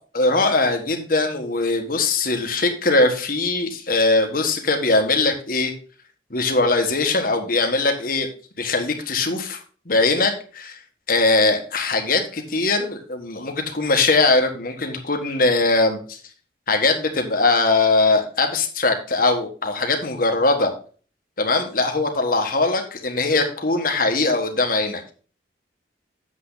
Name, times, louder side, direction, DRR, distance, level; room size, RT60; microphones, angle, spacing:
voice 1, 0.1-5.7 6.3-8.3 8.6-9.6 9.8-10.8 11.1-16.0 16.7-20.7 21.4-25.0, left 3 dB, 50° left, 4 dB, 1.6 m, -21 dB
8.5 x 7.4 x 3.9 m, 0.39 s
head